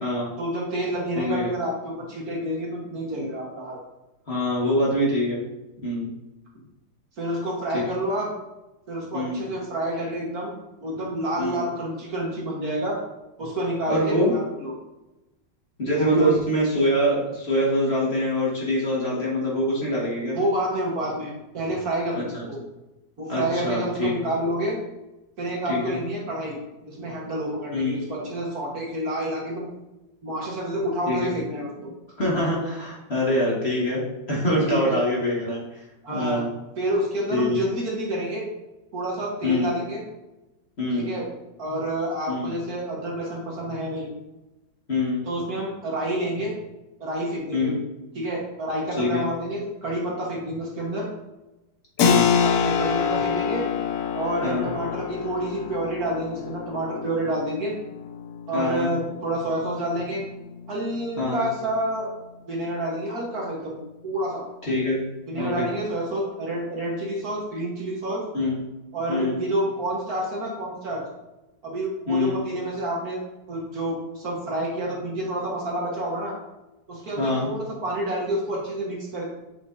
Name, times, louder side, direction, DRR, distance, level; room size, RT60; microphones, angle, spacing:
voice 1, 0.4-3.8 7.2-8.3 8.9-10.5 10.8-13.0 13.4-14.7 16.0-16.4 20.3-22.6 23.2-24.8 25.4-26.6 26.9-29.7 30.2-31.9 34.7-35.0 36.0-36.4 36.8-38.5 38.9-40.0 40.9-41.3 41.6-44.1 45.3-46.5 47.0-47.7 48.2-51.1 52.4-53.7 54.1-57.7 58.5-60.2 60.7-62.1 62.5-63.8 64.0-64.5 65.3-68.2 68.9-71.0 71.6-73.2 73.5-76.4 76.9-79.3, right 1 dB, 50° right, -3 dB, 1.8 m, -28 dB
voice 2, 1.2-1.5 4.3-5.4 5.8-6.1 7.7-7.8 9.1-9.4 11.4-11.6 13.9-14.3 15.8-20.4 22.3-22.5 23.3-24.1 25.7-26.0 27.7-28.0 31.1-31.3 32.2-35.8 36.1-36.5 37.3-37.6 39.4-39.7 40.8-41.1 42.3-42.5 44.9-45.2 47.5-47.8 49.0-49.3 52.0-52.3 54.4-54.7 58.5-58.9 61.2-61.4 64.7-65.0 65.4-65.7 68.3-68.6 69.1-69.4 72.1-72.4 77.2-77.5, left 1 dB, 35° left, -5 dB, 1.8 m, -24 dB
Keyboard (musical), 52.0-62.4, left 7 dB, 75° left, 0.8 m, -28 dB
8.2 x 5.1 x 2.7 m, 1.0 s
omnidirectional pair, 2.1 m